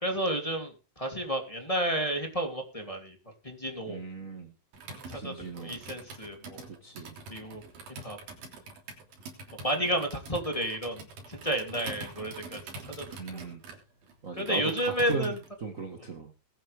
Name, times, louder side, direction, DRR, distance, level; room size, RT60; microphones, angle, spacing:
voice 1, 0.0-3.2 3.4-4.0 5.1-6.7 7.3-7.6 8.0-8.2 9.6-13.1 13.3-13.4 14.3-15.4, equal, 10° left, 1 dB, 2.4 m, -31 dB
voice 2, 3.9-4.5 5.1-5.8 6.8-7.2 13.2-13.6 14.2-15.3 15.6-16.3, right 4 dB, 50° right, 4 dB, 1.0 m, -37 dB
Computer keyboard, 4.7-15.5, right 3 dB, 85° right, 5.1 m, -45 dB
21.0 x 9.1 x 3.5 m, 0.32 s
omnidirectional pair, 4.0 m